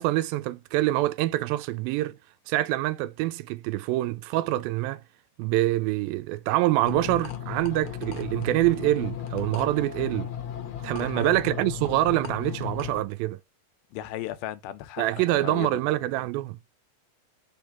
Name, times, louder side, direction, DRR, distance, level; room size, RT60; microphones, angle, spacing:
voice 1, 0.0-2.2 2.5-5.0 5.4-10.3 10.8-13.4 15.0-16.6, right 16 dB, 85° right, 2.3 m, -25 dB
sound 1, 6.8-13.0, left 9 dB, 70° left, 1.6 m, -35 dB
voice 2, 11.0-11.4 13.9-15.7, left 13 dB, 85° left, 2.5 m, -36 dB
5.6 x 3.4 x 5.7 m
omnidirectional pair, 4.2 m